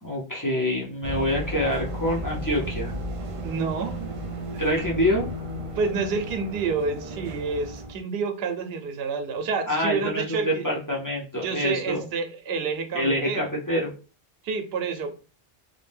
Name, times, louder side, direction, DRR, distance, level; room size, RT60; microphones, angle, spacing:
voice 1, 0.0-2.9 4.6-5.3 9.7-12.0 12.9-13.9, left 1 dB, 25° left, -4 dB, 0.5 m, -26 dB
sound 1, 1.0-8.0, right 1 dB, 50° right, 0.4 m, -34 dB
voice 2, 3.4-4.0 5.8-10.7 11.4-13.5 14.4-15.1, right 5 dB, 75° right, 6 dB, 0.8 m, -29 dB
2.5 x 2.1 x 3.3 m, 0.36 s
omnidirectional pair, 1.0 m